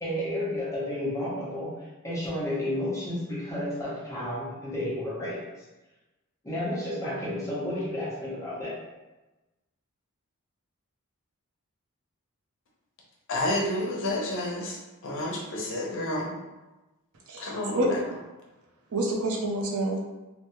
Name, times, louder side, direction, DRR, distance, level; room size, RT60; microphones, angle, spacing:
voice 1, 0.0-5.4 6.4-8.7, left 1 dB, 15° left, -8 dB, 0.7 m, -31 dB
voice 2, 13.3-14.8 15.0-16.3 17.4-18.0, left 1 dB, 60° left, -2 dB, 0.7 m, -30 dB
voice 3, 17.3-17.9 18.9-20.0, right 1 dB, 80° right, -1 dB, 0.6 m, -28 dB
3.2 x 2.1 x 2.9 m, 1.1 s
head